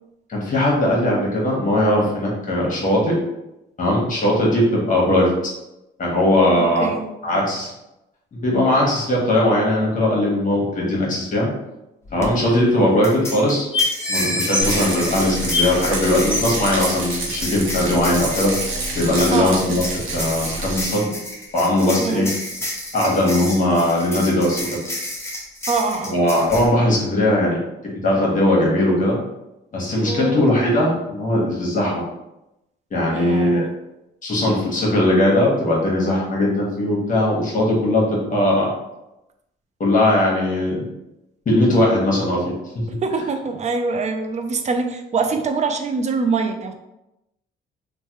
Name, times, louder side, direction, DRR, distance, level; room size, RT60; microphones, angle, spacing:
voice 1, 0.3-3.2 3.8-5.3 6.0-6.9 7.2-7.7 8.3-11.5 12.1-13.7 14.1-18.5 18.9-19.8 20.1-21.1 21.5-22.3 22.9-24.8 26.1-29.2 29.7-32.0 32.9-33.6 34.2-38.7 39.8-40.8 41.5-42.5, left 1 dB, 40° left, -3 dB, 1.1 m, -19 dB
voice 2, 6.8-7.1 19.3-19.7 21.9-22.3 25.7-26.2 30.0-30.4 33.1-33.7 43.0-46.7, right 4 dB, 35° right, 6 dB, 0.4 m, -24 dB
sound 1, 12.0-12.3 13.0-26.7, left 1 dB, 15° left, 0.7 m, -31 dB
sound 2, 12.5-12.6 12.7-12.8 13.3-13.4 13.7-15.9 16.3-16.6 17.3-17.4, left 2 dB, 5° right, 1.2 m, -25 dB
Rattle, 14.6-20.8, right 2 dB, 80° right, 0.8 m, -28 dB
3.1 x 2.2 x 2.9 m, 0.91 s
cardioid pair, 90°, 20 cm